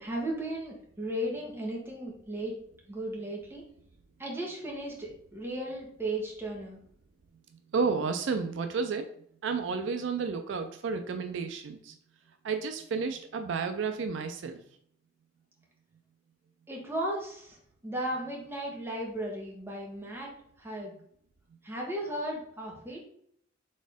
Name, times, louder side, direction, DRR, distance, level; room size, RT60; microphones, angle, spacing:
voice 1, 0.0-2.5 2.9-3.6 4.2-6.8 16.7-17.6 17.8-20.3 20.6-20.9 21.6-23.0, right 1 dB, 10° right, -3 dB, 1.1 m, -35 dB
voice 2, 7.7-9.1 9.4-12.0 12.4-14.6, right 5 dB, 70° right, 7 dB, 0.4 m, -31 dB
4.2 x 3.6 x 3.4 m, 0.66 s
head